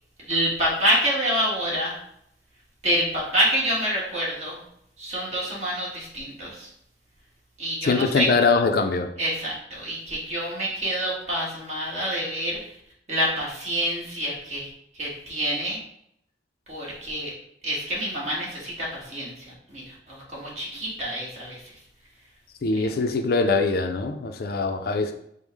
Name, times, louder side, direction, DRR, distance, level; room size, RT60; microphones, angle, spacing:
voice 1, 0.2-2.0 2.8-4.6 5.0-6.7 7.6-8.3 9.2-12.6 13.1-14.7 15.0-15.8 16.7-17.3 17.6-21.6 22.8-22.9, equal, 40° right, -4 dB, 1.5 m, -27 dB
voice 2, 7.8-9.1 22.6-25.1, left 4 dB, 55° left, 6 dB, 0.4 m, -22 dB
5.4 x 2.1 x 4.7 m, 0.73 s
head